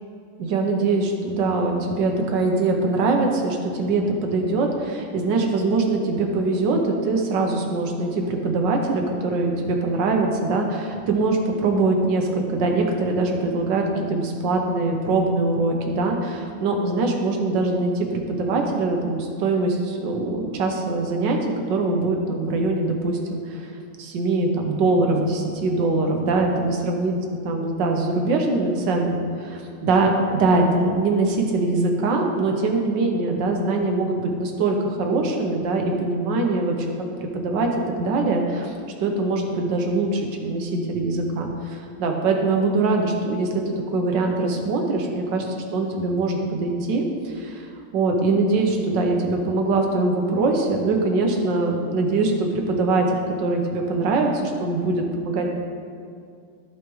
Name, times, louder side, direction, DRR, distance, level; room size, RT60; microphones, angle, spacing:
voice 1, 0.4-21.4 21.7-23.7 24.0-27.2 27.4-36.9 37.2-37.7 38.0-38.7 39.0-47.7 47.9-55.5, right 3 dB, 80° right, 2 dB, 1.6 m, -23 dB
14.5 x 4.9 x 3.1 m, 2.3 s
omnidirectional pair, 1.9 m